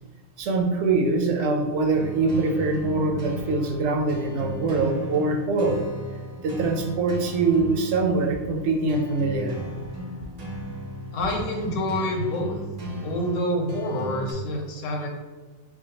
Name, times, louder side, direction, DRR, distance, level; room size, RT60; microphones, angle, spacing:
voice 1, 0.4-5.9 6.4-9.6, right 3 dB, 70° right, 2 dB, 0.9 m, -23 dB
sound 1, 1.9-14.3, right 1 dB, 45° right, 0.6 m, -36 dB
voice 2, 11.1-12.6 13.0-15.1, left 1 dB, 85° left, 1 dB, 1.0 m, -27 dB
4.4 x 2.3 x 2.8 m, 1.3 s
omnidirectional pair, 1.3 m